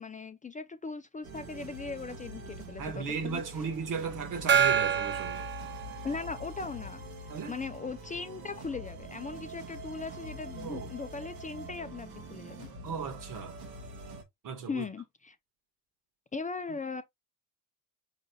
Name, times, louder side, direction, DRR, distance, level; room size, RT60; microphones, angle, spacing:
voice 1, 0.0-3.4 6.0-7.0 7.5-12.7 14.7-15.4 16.3-17.0, left 4 dB, 20° left, 0.5 m, -39 dB
sound 1, 1.2-14.2, right 1 dB, 90° right, 1.6 m, -44 dB
voice 2, 2.8-5.5 7.3-7.6 10.6-10.9 12.8-13.6 14.4-14.8 16.7-16.8, right 6 dB, 55° right, 1.5 m, -36 dB
Gong, 4.5-6.5, right 8 dB, 30° right, 0.6 m, -27 dB
5.1 x 3.9 x 2.3 m
supercardioid pair, 80°, 37 cm